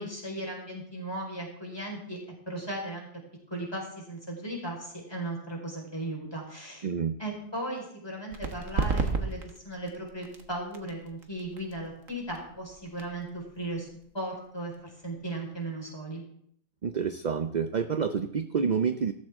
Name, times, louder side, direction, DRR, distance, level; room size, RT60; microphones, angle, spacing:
voice 1, 0.0-2.2 2.4-3.1 3.5-6.8 7.2-9.4 9.6-13.9 14.1-16.2, right 1 dB, 20° left, -1 dB, 4.7 m, -36 dB
voice 2, 6.8-7.2 16.8-19.1, right 6 dB, 45° right, 9 dB, 0.6 m, -28 dB
sound 1, 8.3-15.6, right 4 dB, 75° right, 1.9 m, -36 dB
17.0 x 14.0 x 3.7 m, 0.67 s
omnidirectional pair, 1.4 m